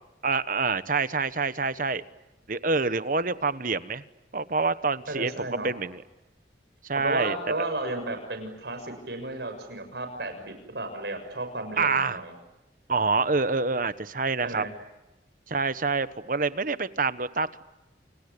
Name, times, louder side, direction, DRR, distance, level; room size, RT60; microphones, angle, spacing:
voice 1, 0.2-2.0 2.5-4.0 4.3-6.0 6.8-7.3 11.8-12.2 12.9-14.6 15.5-17.6, right 4 dB, 50° right, 13 dB, 1.2 m, -27 dB
voice 2, 5.1-5.7 6.9-12.3 14.4-14.7, right 2 dB, 70° right, 6 dB, 6.7 m, -33 dB
29.5 x 29.5 x 6.9 m, 0.98 s
head